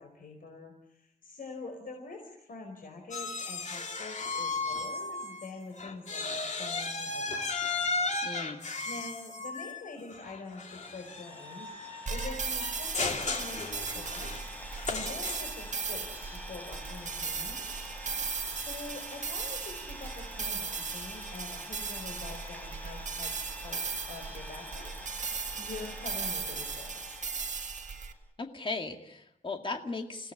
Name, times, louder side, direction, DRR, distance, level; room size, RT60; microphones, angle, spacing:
voice 1, 0.0-7.9 8.8-14.3 14.6-17.7 18.4-24.9 25.2-27.0, left 3 dB, 75° left, 2 dB, 4.8 m, -45 dB
sound 1, 3.1-5.5 5.8-15.7, left 3 dB, 55° left, 3.0 m, -35 dB
voice 2, 8.2-8.6 28.4-30.3, left 3 dB, 35° left, 4 dB, 2.2 m, -37 dB
Idling, 10.5-28.2, equal, 10° left, 4.0 m, -47 dB
sound 2, 12.1-28.1, right 5 dB, 55° right, 1.7 m, -37 dB
29.5 x 17.5 x 9.9 m, 0.81 s
wide cardioid pair, 175°, 15 cm